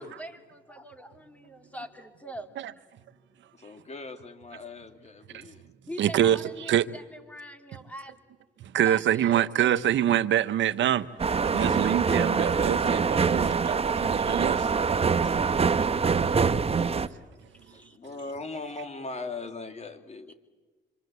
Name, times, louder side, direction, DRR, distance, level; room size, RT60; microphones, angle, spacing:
voice 1, 0.0-2.6 5.9-8.2 8.8-9.5 17.5-18.0, equal, 5° left, 3.1 m, -43 dB
voice 2, 3.5-5.6 17.0-17.1 17.7-20.3, left 3 dB, 35° left, 2.9 m, -40 dB
voice 3, 6.0-6.9 8.6-11.1 11.4-14.7, right 11 dB, 70° right, 1.1 m, -25 dB
sound 1, 11.2-17.1, right 5 dB, 30° right, 1.0 m, -24 dB
26.5 x 26.0 x 8.2 m
cardioid pair, 90°, 20 cm